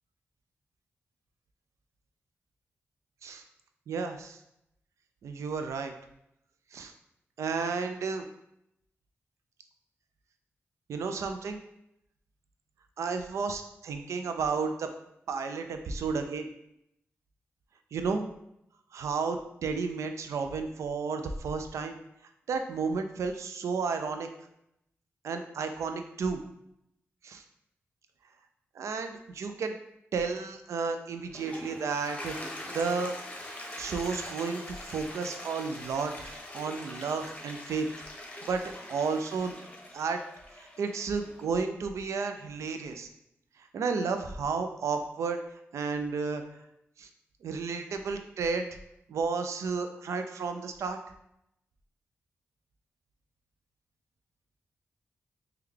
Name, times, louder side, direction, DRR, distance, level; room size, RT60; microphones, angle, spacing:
voice 1, 3.9-4.4 5.2-5.9 6.7-6.9 7.4-8.2 10.9-11.6 13.0-14.9 15.3-16.5 17.9-18.2 18.9-22.0 22.5-24.3 25.2-26.4 27.2-27.4 28.8-29.7 30.1-32.3 32.7-33.2 33.8-37.9 38.4-38.6 38.9-39.6 39.9-40.2 40.6-43.1 43.7-45.4 45.7-46.4 47.0-47.1 47.4-48.7 49.1-51.0, right 5 dB, 80° right, 7 dB, 0.3 m, -32 dB
Toilet flush, 31.1-41.4, left 1 dB, 25° left, 0.7 m, -43 dB
3.4 x 2.2 x 3.2 m, 0.79 s
cardioid pair, 55°, 5 cm